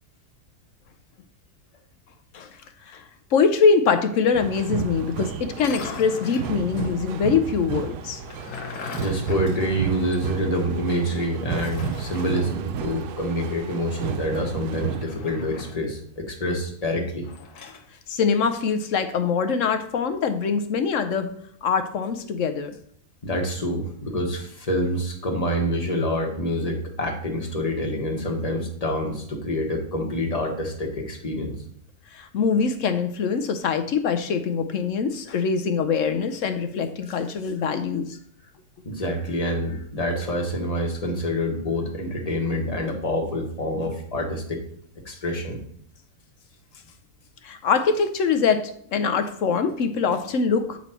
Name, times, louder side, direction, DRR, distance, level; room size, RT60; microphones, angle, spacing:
voice 1, 2.3-8.2 18.1-21.3 21.6-22.8 32.1-38.2 47.4-50.8, left 5 dB, 65° left, 8 dB, 0.9 m, -23 dB
sound 1, 4.3-15.1, right 8 dB, 90° right, 1.1 m, -32 dB
sound 2, 5.5-6.6 8.1-10.3 10.6-10.7 11.5-12.4 14.9-15.9 17.2-17.9, left 5 dB, 80° left, 1.4 m, -39 dB
voice 2, 9.0-17.2 23.2-31.5 38.8-44.6 45.0-45.6, equal, 25° left, 1 dB, 1.2 m, -27 dB
8.3 x 4.1 x 4.4 m, 0.64 s
omnidirectional pair, 1.6 m